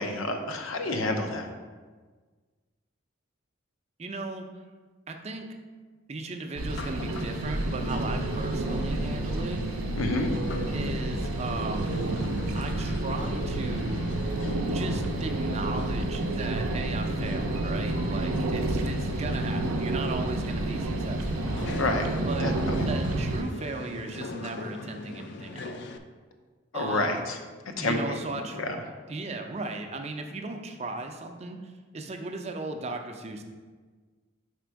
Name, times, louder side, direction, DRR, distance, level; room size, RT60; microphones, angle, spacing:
voice 1, 0.0-1.5 10.0-10.3 21.7-22.1 22.4-22.9 26.7-27.4 27.8-28.2 28.5-28.8, left 2 dB, 80° left, 4 dB, 0.7 m, -29 dB
voice 2, 4.0-4.5 5.1-5.5 6.1-9.6 10.7-12.0 12.5-14.0 14.7-21.5 22.2-22.5 22.8-25.9 26.7-27.2 27.8-28.6 29.1-33.4, right 3 dB, 30° right, 4 dB, 0.4 m, -36 dB
sound 1, 6.6-23.4, right 2 dB, 90° right, 0.5 m, -30 dB
sound 2, 6.7-26.0, left 3 dB, 55° left, 0.4 m, -41 dB
5.0 x 4.2 x 4.6 m, 1.4 s
head